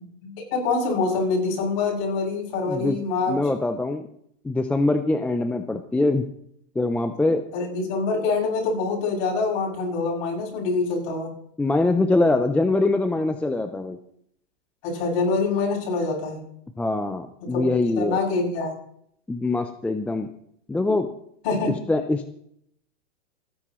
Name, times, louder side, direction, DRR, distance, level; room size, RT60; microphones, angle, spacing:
voice 1, 0.2-3.4 7.5-11.3 14.8-16.4 17.4-18.7 21.4-21.7, left 4 dB, 45° left, -3 dB, 7.2 m, -25 dB
voice 2, 3.3-4.1 4.4-6.3 6.8-7.4 11.6-14.0 16.8-18.2 19.3-20.3 20.7-21.1 21.9-22.3, left 2 dB, 5° left, 7 dB, 0.4 m, -23 dB
28.0 x 10.0 x 3.1 m, 0.69 s
hypercardioid pair, 130°, 34 cm